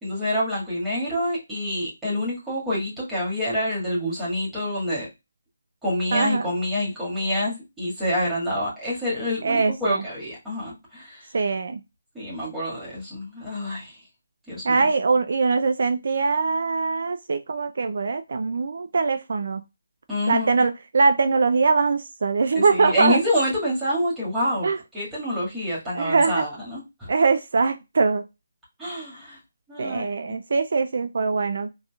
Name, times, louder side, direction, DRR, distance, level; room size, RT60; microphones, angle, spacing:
voice 1, 0.0-5.1 5.8-11.3 12.1-14.0 14.5-14.9 20.1-20.7 22.6-27.1 28.8-29.4 29.7-30.4, left 1 dB, 5° right, -9 dB, 1.9 m, -27 dB
voice 2, 6.1-6.5 9.4-10.0 11.3-11.8 14.6-19.6 20.3-23.2 24.6-24.8 25.9-26.4 27.1-28.2 29.8-31.7, right 4 dB, 60° right, 9 dB, 0.4 m, -22 dB
3.9 x 2.9 x 2.3 m, 0.23 s
figure-of-eight pair, 160°, 0 cm